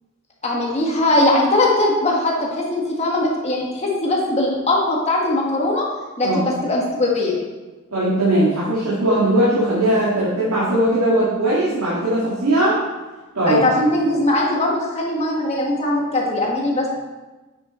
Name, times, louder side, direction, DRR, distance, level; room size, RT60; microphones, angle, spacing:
voice 1, 0.4-5.9 6.2-7.4 13.5-16.9, left 1 dB, 30° left, -2 dB, 1.7 m, -20 dB
voice 2, 7.9-12.8 13.3-13.6, right 1 dB, 90° right, -8 dB, 2.3 m, -19 dB
8.7 x 6.8 x 4.4 m, 1.2 s
head